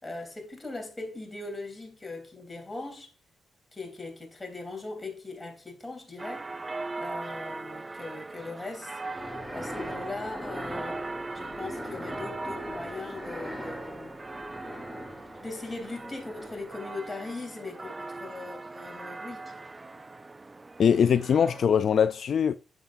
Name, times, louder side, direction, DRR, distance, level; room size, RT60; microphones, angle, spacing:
voice 1, 0.0-3.1 3.7-6.5 7.0-9.0 9.5-11.0 11.3-14.1 15.4-19.4, left 3 dB, 20° left, 3.2 m, -39 dB
sound 1, 6.2-21.7, right 3 dB, 25° right, 0.4 m, -40 dB
sound 2, 8.9-17.0, equal, 5° right, 2.7 m, -40 dB
voice 2, 20.8-22.6, left 7 dB, 60° left, 0.3 m, -22 dB
8.8 x 7.3 x 2.6 m
supercardioid pair, 55°, 0 cm